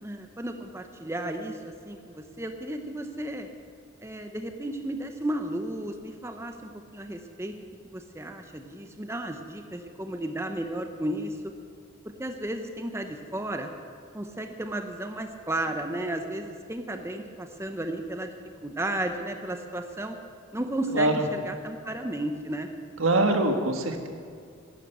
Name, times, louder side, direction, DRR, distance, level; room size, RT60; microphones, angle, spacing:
voice 1, 0.0-3.5 4.0-7.5 7.9-11.4 12.2-13.7 14.1-18.3 18.6-20.2 20.5-22.7, right 1 dB, 15° right, 6 dB, 0.8 m, -33 dB
voice 2, 23.0-24.1, right 2 dB, 90° right, 5 dB, 1.6 m, -23 dB
11.5 x 11.5 x 8.2 m, 2.3 s
head